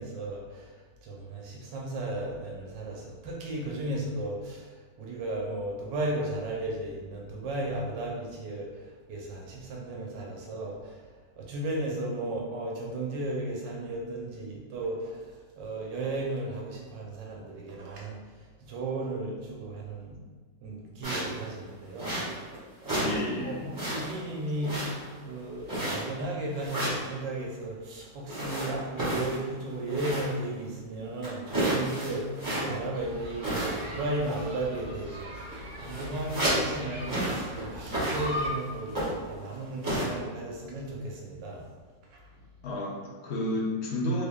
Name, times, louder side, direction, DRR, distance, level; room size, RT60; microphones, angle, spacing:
voice 1, 0.0-20.2 20.6-22.4 22.8-24.8 25.2-41.6 42.1-42.4, right 2 dB, 85° right, -2 dB, 1.3 m, -35 dB
sound 1, 21.0-21.4 22.0-22.5 22.8-23.2 23.5-24.2 24.6-25.2 25.7-26.2 26.6-27.0 28.3-30.4 30.7-30.8 31.2-32.9 33.4-34.0 34.2-34.5 35.2-35.3 35.5-36.7 37.0-37.5 37.8-38.5 38.9-39.3 39.8-40.0, right 1 dB, 15° right, 1.1 m, -31 dB
voice 2, 23.0-23.6 42.6-44.2, left 1 dB, 65° left, -4 dB, 0.6 m, -31 dB
sound 2, 32.9-38.5, left 1 dB, 55° right, 1.0 m, -40 dB
3.6 x 3.5 x 2.2 m, 1.4 s
omnidirectional pair, 2.0 m